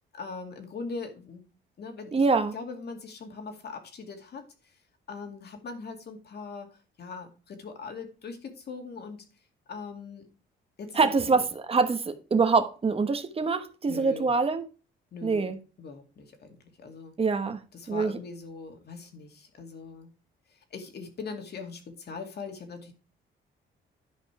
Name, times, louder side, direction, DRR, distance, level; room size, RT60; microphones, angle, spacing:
voice 1, 0.1-1.5 1.8-2.2 2.5-4.5 5.1-9.2 9.7-10.2 10.8-11.4 13.9-14.3 15.1-15.5 15.8-17.1 17.7-20.1 20.5-22.9, left 4 dB, 55° left, 2.3 m, -41 dB
voice 2, 2.1-2.5 10.9-14.7 15.2-15.6 17.2-17.6 17.9-18.1, right 4 dB, 30° right, 1.2 m, -25 dB
10.5 x 5.1 x 4.8 m
cardioid pair, 90°, 20 cm